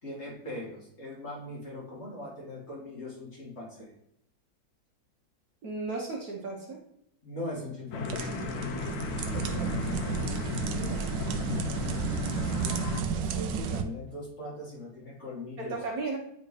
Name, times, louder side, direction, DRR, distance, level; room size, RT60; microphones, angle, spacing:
voice 1, 0.0-3.9 7.2-8.8 9.1-10.3 11.4-15.8, left 1 dB, 35° left, -5 dB, 2.2 m, -41 dB
voice 2, 5.6-6.8 10.6-11.0 15.6-16.2, right 3 dB, 55° right, -2 dB, 1.4 m, -35 dB
sound 1, 7.9-13.0, left 4 dB, 85° left, 0.7 m, -35 dB
sound 2, 7.9-13.8, right 6 dB, 75° right, 1.3 m, -32 dB
8.8 x 3.6 x 3.2 m, 0.76 s
omnidirectional pair, 2.1 m